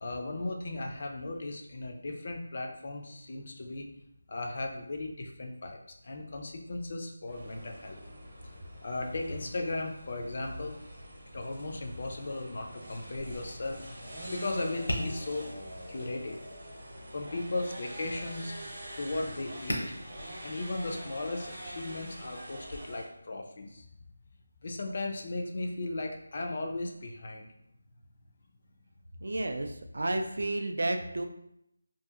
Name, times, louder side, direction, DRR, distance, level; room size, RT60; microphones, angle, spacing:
voice 1, 0.0-3.9 4.3-5.8 6.0-8.0 8.8-10.7 11.3-13.8 14.3-15.5 15.9-16.4 17.1-18.5 19.0-20.0 20.4-23.9 24.6-27.5, left 2 dB, 35° left, 2 dB, 0.3 m, -36 dB
sound 1, 7.3-23.0, equal, 35° right, 0.8 m, -45 dB
Tap, 13.1-22.8, equal, 75° left, 0.7 m, -43 dB
voice 2, 29.2-31.3, right 2 dB, 60° right, 5 dB, 0.3 m, -31 dB
2.7 x 2.4 x 2.4 m, 0.80 s
figure-of-eight pair, 175°, 0 cm